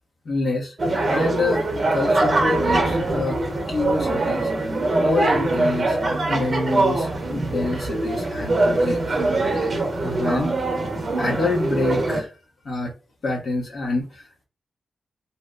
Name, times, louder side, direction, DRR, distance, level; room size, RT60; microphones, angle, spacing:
voice 1, 0.2-1.6 1.9-3.4 3.7-4.7 5.0-6.0 6.3-9.2 10.0-10.5 11.2-12.3 12.6-12.9 13.2-14.2, left 3 dB, 60° left, -3 dB, 1.0 m, -27 dB
sound 1, 0.8-12.2, right 2 dB, 35° right, 0.9 m, -22 dB
2.8 x 2.1 x 3.5 m, 0.32 s
wide cardioid pair, 140°, 0 cm